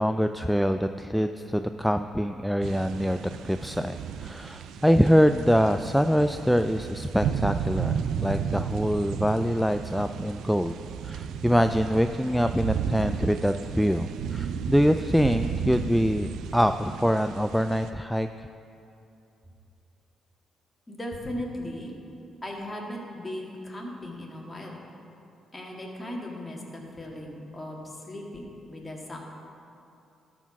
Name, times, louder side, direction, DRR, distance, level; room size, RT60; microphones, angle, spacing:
voice 1, 0.0-10.8 11.0-18.5, equal, ahead, 8 dB, 0.3 m, -24 dB
sound 1, 2.6-17.9, right 7 dB, 75° right, 0.4 m, -33 dB
voice 2, 20.9-21.9 22.4-24.8 25.5-29.2, left 1 dB, 25° left, -1 dB, 1.9 m, -37 dB
12.5 x 4.6 x 5.9 m, 2.7 s
supercardioid pair, 60°, 0 cm